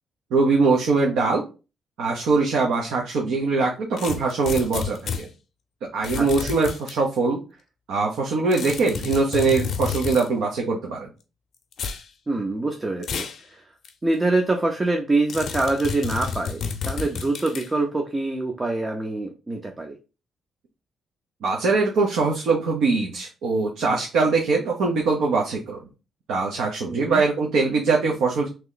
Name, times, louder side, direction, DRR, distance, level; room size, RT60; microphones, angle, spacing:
voice 1, 0.3-1.4 2.0-5.3 5.8-7.4 7.9-11.1 21.4-25.8 26.3-28.5, right 4 dB, 90° right, -1 dB, 0.8 m, -22 dB
sound 1, 4.0-5.2 6.0-7.0 8.5-10.3 11.7-12.0 13.0-13.4 13.8-13.9 15.3-17.7, left 6 dB, 55° left, 0.6 m, -30 dB
voice 2, 6.2-6.5 12.3-13.6 14.0-20.0 26.9-27.2, right 2 dB, 15° right, 3 dB, 0.4 m, -25 dB
3.2 x 2.9 x 3.9 m, 0.31 s
cardioid pair, 165°, 0 cm